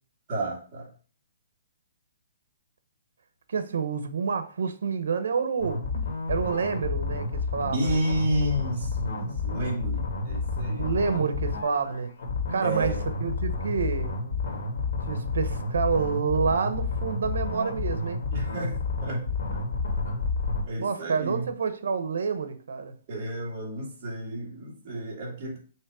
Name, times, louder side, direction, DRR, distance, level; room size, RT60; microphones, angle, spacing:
voice 1, 0.3-0.9 7.7-10.9 11.1-11.3 12.6-13.0 18.3-19.3 20.1-20.2 20.7-21.5 23.1-25.6, right 1 dB, 30° right, 2.5 m, -31 dB
voice 2, 3.5-5.8 6.3-8.0 10.8-12.1 12.5-12.9 13.2-14.1 15.1-18.2 20.8-22.9, right 5 dB, 70° right, 1.0 m, -28 dB
sound 1, 5.6-20.6, left 3 dB, 60° left, 2.1 m, -30 dB
6.4 x 3.1 x 4.8 m
hypercardioid pair, 170°, 0 cm